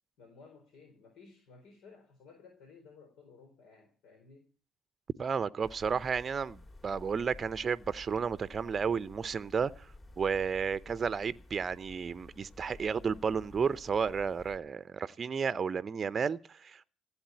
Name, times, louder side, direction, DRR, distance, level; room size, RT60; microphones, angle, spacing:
voice 1, 0.2-4.5, left 4 dB, 65° left, 4.1 m, -56 dB
voice 2, 5.2-9.9 10.2-16.8, right 6 dB, 35° right, 0.7 m, -32 dB
sound 1, 5.6-14.6, left 2 dB, 35° left, 4.7 m, -53 dB
16.0 x 8.7 x 8.8 m
hypercardioid pair, 60°, 0 cm